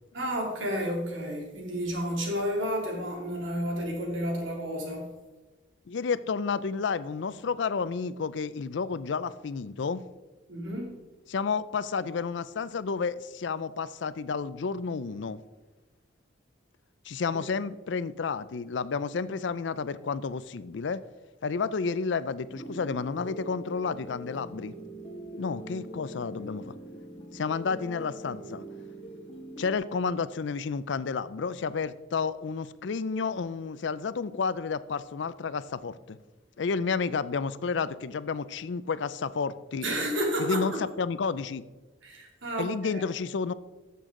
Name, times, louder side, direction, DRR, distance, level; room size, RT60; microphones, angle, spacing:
voice 1, 0.1-5.1 10.5-10.9 39.8-40.8 42.0-43.0, equal, 90° right, 0 dB, 2.7 m, -31 dB
voice 2, 5.9-10.0 11.3-15.4 17.1-21.0 21.4-24.7 25.4-26.7 27.3-28.6 29.6-36.2 36.6-39.9 40.4-41.6 42.6-43.5, left 5 dB, 70° left, 16 dB, 0.5 m, -31 dB
sound 1, 22.5-29.8, right 1 dB, 30° left, 1.6 m, -43 dB
14.0 x 6.9 x 3.7 m, 1.2 s
head